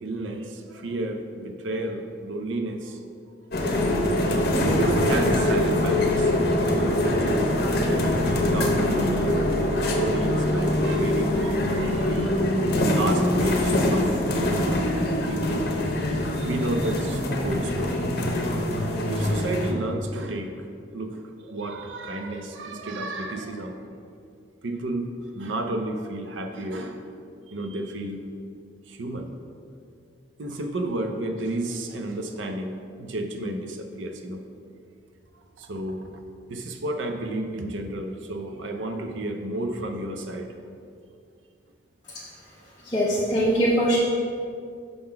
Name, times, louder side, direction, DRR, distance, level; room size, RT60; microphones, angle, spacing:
voice 1, 0.0-3.0 3.5-6.4 6.7-7.5 7.8-15.7 16.4-18.0 19.1-20.7 20.9-23.8 24.6-27.0 27.5-28.3 28.9-29.3 30.4-34.4 35.6-36.0 36.5-40.6, right 2 dB, 90° right, 5 dB, 0.6 m, -32 dB
sound 1, 3.5-19.7, left 1 dB, 55° left, 0.7 m, -23 dB
voice 2, 42.8-44.0, equal, 20° left, -6 dB, 0.6 m, -22 dB
5.4 x 3.7 x 5.7 m, 2.3 s
head